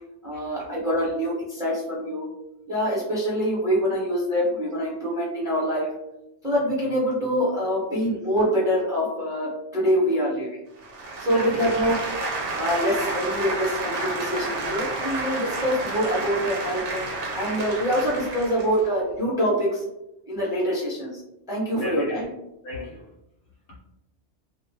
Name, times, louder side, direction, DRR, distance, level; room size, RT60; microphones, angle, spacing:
voice 1, 0.2-2.3 2.7-5.9 6.4-10.6 11.2-11.9 12.6-17.0 17.3-19.8 20.3-21.1 21.5-22.3, equal, 5° right, -6 dB, 0.6 m, -25 dB
sound 1, 10.8-18.8, right 3 dB, 85° right, 1.0 m, -30 dB
voice 2, 11.3-11.7 21.7-22.3 22.6-23.1, left 2 dB, 65° left, -3 dB, 0.7 m, -33 dB
2.3 x 2.1 x 2.6 m, 0.89 s
omnidirectional pair, 1.2 m